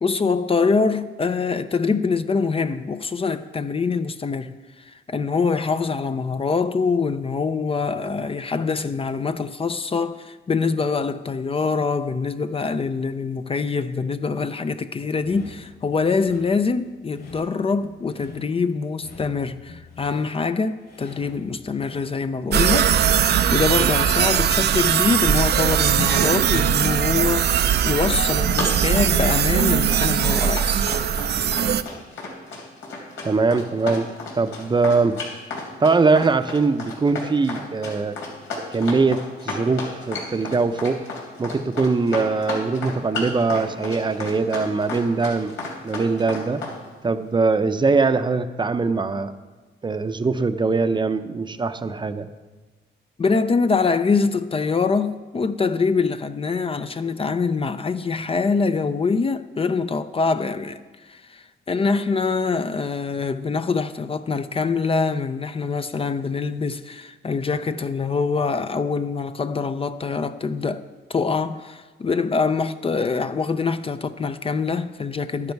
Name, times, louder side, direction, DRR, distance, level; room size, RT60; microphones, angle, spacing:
voice 1, 0.0-30.8 53.2-75.5, left 4 dB, 30° left, 0.5 m, -24 dB
sound 1, 15.2-28.7, left 3 dB, 55° left, 3.6 m, -43 dB
sound 2, 22.5-31.8, right 9 dB, 55° right, 0.6 m, -20 dB
Run, 28.0-46.8, left 3 dB, 90° left, 3.6 m, -32 dB
voice 2, 33.2-34.1 34.4-35.2 35.8-38.2 38.7-41.0 41.4-45.6 45.8-46.6 47.0-49.3 49.8-52.3, right 4 dB, 25° right, 0.7 m, -21 dB
12.0 x 10.5 x 4.6 m
cardioid pair, 90°, 20 cm